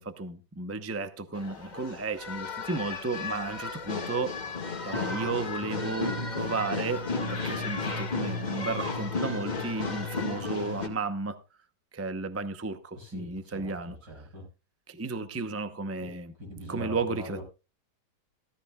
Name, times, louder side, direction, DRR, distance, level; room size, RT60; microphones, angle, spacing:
voice 1, 0.0-4.4 4.8-11.4 11.9-14.0 14.9-16.3 16.7-17.4, right 3 dB, 20° right, 0.3 m, -33 dB
sound 1, 1.3-10.9, left 3 dB, 25° left, 1.8 m, -33 dB
voice 2, 13.0-14.5 16.0-16.1 16.4-17.4, right 1 dB, 65° right, 6.3 m, -43 dB
17.0 x 13.0 x 2.3 m
omnidirectional pair, 2.0 m